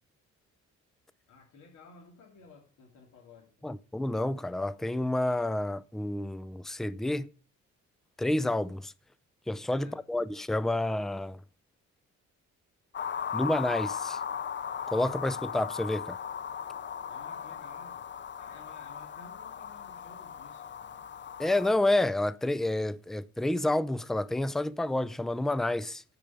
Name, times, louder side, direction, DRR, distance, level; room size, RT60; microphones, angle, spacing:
voice 1, 1.3-3.7 9.8-10.0 17.1-18.1 18.4-21.2, left 4 dB, 75° left, 3.1 m, -54 dB
voice 2, 3.6-7.3 8.2-8.9 9.5-11.4 13.3-14.2 14.9-16.2 21.4-26.0, left 1 dB, ahead, 0.5 m, -29 dB
sound 1, 12.9-21.7, left 7 dB, 40° left, 0.7 m, -37 dB
10.5 x 5.1 x 7.4 m
cardioid pair, 90°, 30 cm